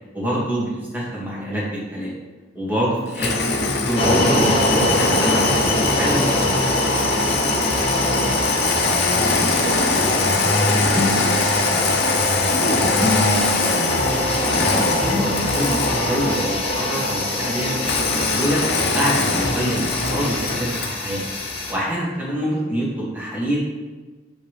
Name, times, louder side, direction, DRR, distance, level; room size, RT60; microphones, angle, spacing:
voice 1, 0.1-2.1 2.5-6.6 14.8-18.6 18.9-21.2 21.7-23.6, equal, 10° right, -7 dB, 2.1 m, -26 dB
Engine starting, 3.1-16.6 17.8-21.0, left 3 dB, 60° left, 0.8 m, -22 dB
sound 1, 3.9-21.7, left 1 dB, 30° left, 1.1 m, -23 dB
voice 2, 7.8-8.5 8.9-12.0 12.5-14.2 22.5-22.8, equal, 55° right, 0 dB, 1.0 m, -33 dB
sound 2, 10.5-16.5, equal, 10° left, 0.7 m, -29 dB
6.8 x 5.5 x 3.3 m, 1.3 s
head